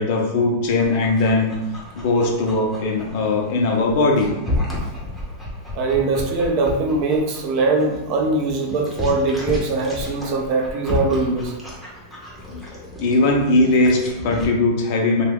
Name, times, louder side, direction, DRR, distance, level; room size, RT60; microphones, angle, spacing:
voice 1, 0.0-1.5 2.0-4.3 13.0-15.2, left 2 dB, 55° left, 1 dB, 0.6 m, -19 dB
Dog, 0.6-14.4, left 1 dB, ahead, 0.7 m, -32 dB
voice 2, 5.7-11.5, right 3 dB, 45° right, 2 dB, 0.5 m, -21 dB
2.9 x 2.3 x 3.4 m, 0.93 s
supercardioid pair, 150°, 0 cm